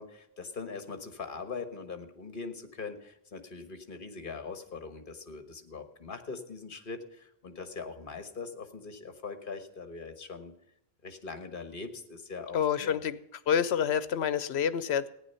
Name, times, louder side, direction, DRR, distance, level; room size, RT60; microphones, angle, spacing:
voice 1, 0.0-10.6 11.0-13.0, left 4 dB, 55° left, 8 dB, 1.5 m, -42 dB
voice 2, 12.5-13.2 13.5-15.1, left 8 dB, 75° left, 15 dB, 1.0 m, -27 dB
15.0 x 9.8 x 5.6 m, 0.81 s
omnidirectional pair, 1.1 m